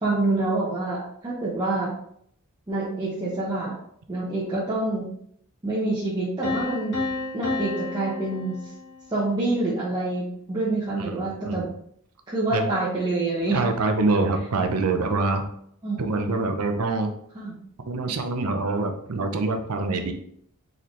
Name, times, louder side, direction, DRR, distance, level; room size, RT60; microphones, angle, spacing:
voice 1, 0.0-1.9 2.7-3.7 4.1-5.1 5.6-7.0 7.3-8.6 9.1-11.7 12.3-13.6 15.8-16.1 17.3-17.5, right 2 dB, 20° right, -8 dB, 1.0 m, -26 dB
Piano, 6.4-9.3, left 3 dB, 50° left, 1.3 m, -31 dB
voice 2, 11.0-11.6 12.5-12.6 13.5-15.5 16.0-17.1 17.9-20.1, right 3 dB, 80° right, 6 dB, 0.6 m, -25 dB
4.2 x 3.9 x 3.1 m, 0.68 s
head